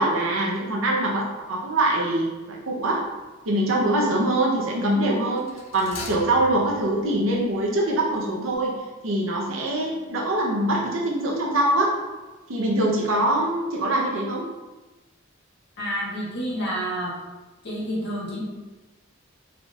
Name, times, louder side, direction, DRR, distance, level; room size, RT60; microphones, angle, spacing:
voice 1, 0.0-3.0 3.5-5.4 5.7-8.7 9.0-11.9 12.5-14.4, right 1 dB, 85° right, -2 dB, 0.7 m, -23 dB
sound 1, 2.9-3.2 5.4-8.2 8.4-8.5, left 3 dB, 90° left, 0.6 m, -41 dB
voice 2, 15.8-17.1 17.6-18.4, equal, 60° left, -6 dB, 1.5 m, -29 dB
4.2 x 3.6 x 2.4 m, 1.2 s
head